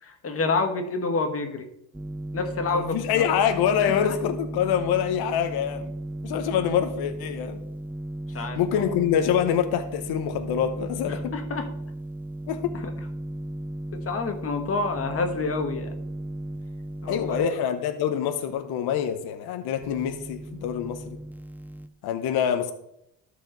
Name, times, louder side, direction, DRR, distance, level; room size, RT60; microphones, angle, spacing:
voice 1, 0.0-1.7 2.3-3.2 3.8-4.1 8.3-8.8 11.1-11.7 12.7-12.9 13.9-15.9 17.0-17.6, left 3 dB, 35° left, 6 dB, 1.4 m, -28 dB
sound 1, 1.9-17.5 19.8-21.9, right 1 dB, 5° right, 0.4 m, -36 dB
voice 2, 2.7-5.9 6.2-7.6 8.6-11.3 12.5-12.7 17.1-21.0 22.0-22.7, left 9 dB, 70° left, 8 dB, 0.9 m, -25 dB
13.0 x 4.8 x 3.9 m, 0.78 s
cardioid pair, 105°, 39 cm